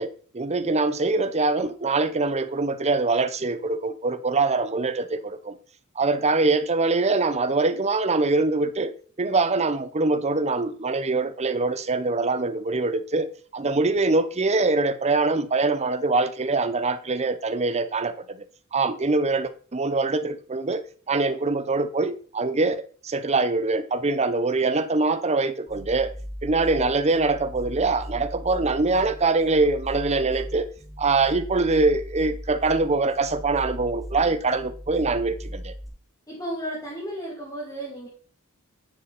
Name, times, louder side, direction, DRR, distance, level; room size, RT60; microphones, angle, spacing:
voice 1, 0.0-5.6 6.0-8.9 9.2-13.3 13.5-18.4 18.7-26.1 26.4-30.7 31.0-35.7, right 3 dB, 30° right, 0.7 m, -23 dB
sound 1, 25.7-35.9, equal, ahead, 2.2 m, -38 dB
voice 2, 36.3-38.1, right 1 dB, 15° left, 2.5 m, -33 dB
10.0 x 6.9 x 4.2 m
head